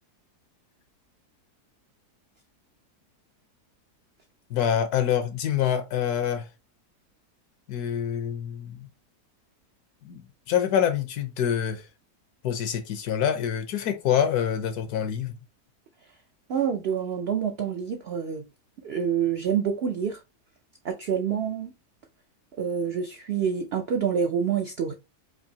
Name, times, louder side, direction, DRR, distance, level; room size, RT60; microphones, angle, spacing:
voice 1, 4.5-6.5 7.7-8.9 10.0-11.9 12.4-15.4, left 9 dB, 75° left, 1.2 m, -26 dB
voice 2, 16.5-18.4 18.8-20.2 20.8-21.7 22.6-24.9, right 7 dB, 75° right, 0.5 m, -27 dB
4.9 x 2.7 x 2.7 m
omnidirectional pair, 1.7 m